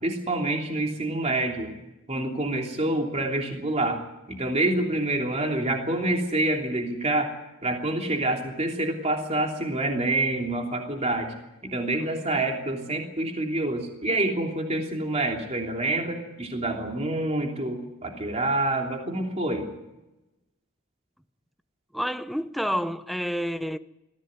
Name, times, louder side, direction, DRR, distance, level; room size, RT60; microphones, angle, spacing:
voice 1, 0.0-1.7 2.1-4.0 4.3-7.3 7.6-11.3 11.6-19.7, right 2 dB, 30° right, 3.2 m, -27 dB
voice 2, 12.0-12.4 21.9-23.8, equal, ahead, 0.7 m, -29 dB
22.5 x 15.5 x 9.6 m
head